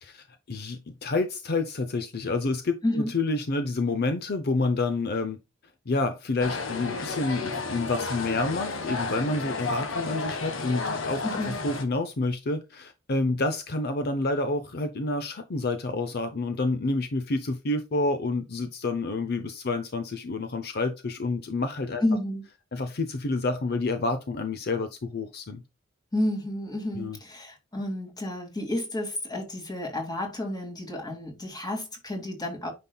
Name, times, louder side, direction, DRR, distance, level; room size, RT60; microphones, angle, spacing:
voice 1, 0.0-5.4 5.9-22.0 22.7-25.6 26.9-27.2, left 3 dB, 55° left, 0.7 m, -29 dB
sound 1, 6.4-11.8, left 3 dB, 85° left, 1.5 m, -32 dB
voice 2, 11.2-11.6 22.0-22.4 26.1-32.7, left 1 dB, 20° left, 2.3 m, -30 dB
9.4 x 5.4 x 2.3 m
head